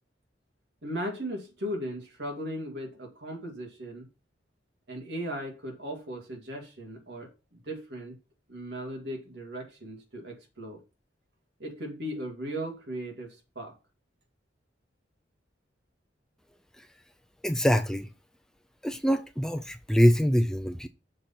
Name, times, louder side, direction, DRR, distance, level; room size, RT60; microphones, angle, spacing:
voice 1, 0.8-4.1 4.9-7.3 7.7-8.2 8.5-10.8 11.6-13.7, equal, 65° right, 2.3 m, -37 dB
voice 2, 17.4-18.1 18.8-20.9, equal, 5° left, 0.4 m, -24 dB
6.6 x 4.3 x 5.7 m
head